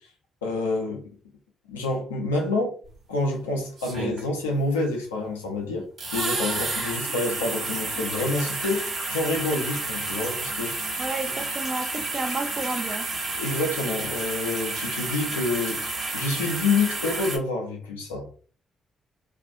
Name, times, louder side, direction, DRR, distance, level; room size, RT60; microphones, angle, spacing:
voice 1, 0.4-1.0 1.7-2.8 3.1-10.7 13.4-15.8 16.1-18.3, left 3 dB, 85° left, 0.6 m, -27 dB
sound 1, 2.8-2.9 3.8-4.5 6.0-17.4, right 3 dB, 60° right, 1.0 m, -30 dB
voice 2, 11.0-13.1, right 3 dB, 35° right, 0.4 m, -31 dB
2.4 x 2.4 x 2.6 m
figure-of-eight pair, 40°, 0 cm